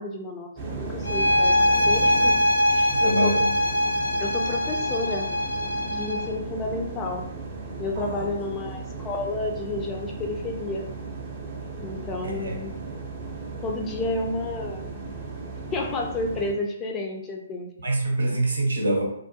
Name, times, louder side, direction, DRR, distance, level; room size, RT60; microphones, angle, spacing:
voice 1, 0.0-2.4 2.7-3.4 4.2-5.3 5.8-7.3 7.8-10.8 11.8-12.8 13.6-14.9 15.7-17.7, left 2 dB, 20° left, 1 dB, 0.3 m, -31 dB
sound 1, 0.6-16.5, right 4 dB, 35° right, 0.5 m, -36 dB
sound 2, 1.0-6.3, left 1 dB, 90° left, 0.5 m, -22 dB
voice 2, 2.9-3.5 7.9-8.3 12.2-12.6 17.8-19.0, right 1 dB, 75° right, -1 dB, 0.7 m, -25 dB
2.3 x 2.1 x 2.7 m, 0.72 s
figure-of-eight pair, 130°, 0 cm